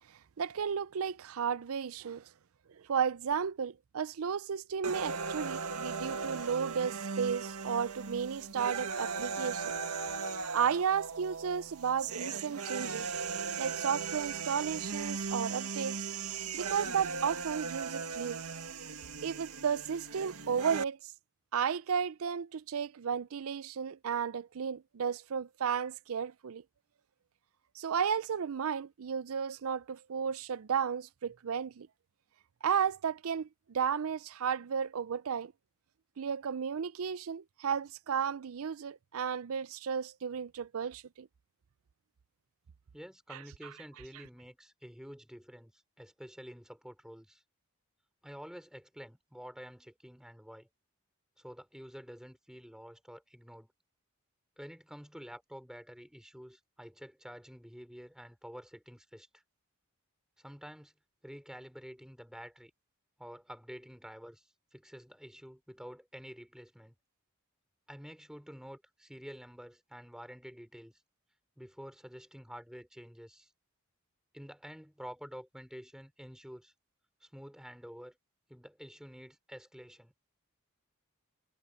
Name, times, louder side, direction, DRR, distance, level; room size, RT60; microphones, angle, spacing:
voice 1, 0.4-2.3 2.8-9.6 10.5-13.1 13.6-16.1 16.5-18.4 19.2-21.1 21.5-26.6 27.8-31.9 32.6-35.5 36.2-41.3 43.3-43.4, right 7 dB, 70° right, 0.5 m, -33 dB
sound 1, 4.8-20.8, right 5 dB, 90° right, 1.8 m, -38 dB
voice 2, 42.9-47.4 48.2-50.7 51.4-53.7 54.6-59.4 60.4-60.9 61.2-62.7 63.2-67.0 67.9-71.0 71.6-73.5 74.3-76.7 77.2-78.2 78.5-80.1, equal, 5° right, 4.7 m, -49 dB
head